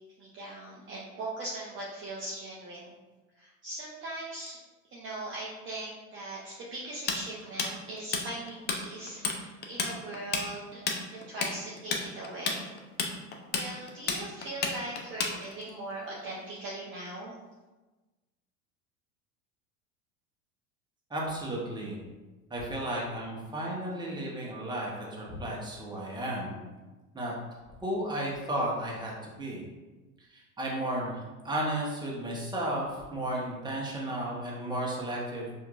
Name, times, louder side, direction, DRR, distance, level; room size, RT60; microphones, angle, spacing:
voice 1, 0.2-2.9 3.4-4.6 4.9-12.7 13.5-17.3, right 2 dB, 30° right, -5 dB, 0.7 m, -40 dB
Tools, 7.1-8.8 9.1-9.4 9.6-15.7, left 5 dB, 25° left, 0.5 m, -31 dB
voice 2, 21.1-22.0 22.5-26.6 27.1-27.3 27.8-29.6 30.3-35.5, right 1 dB, 10° right, -4 dB, 1.0 m, -33 dB
4.4 x 2.7 x 2.4 m, 1.2 s
hypercardioid pair, 85°, 41 cm